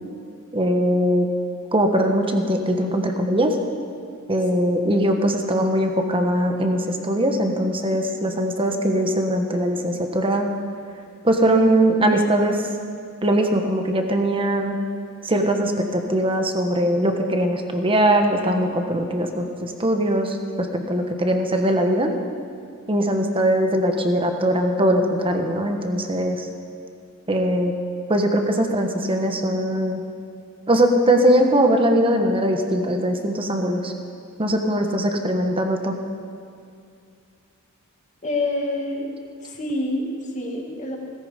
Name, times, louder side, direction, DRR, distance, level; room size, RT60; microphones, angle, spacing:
voice 1, 0.5-1.3 1.7-3.5 4.3-10.5 11.2-12.6 13.2-14.8 15.2-20.4 20.7-22.1 22.9-26.4 27.3-27.7 28.1-30.0 30.7-33.9 34.4-35.9, right 1 dB, 25° right, 4 dB, 1.4 m, -21 dB
voice 2, 38.2-39.1 39.4-41.0, left 2 dB, 35° left, 0 dB, 2.4 m, -27 dB
17.5 x 16.0 x 5.3 m, 2.3 s
head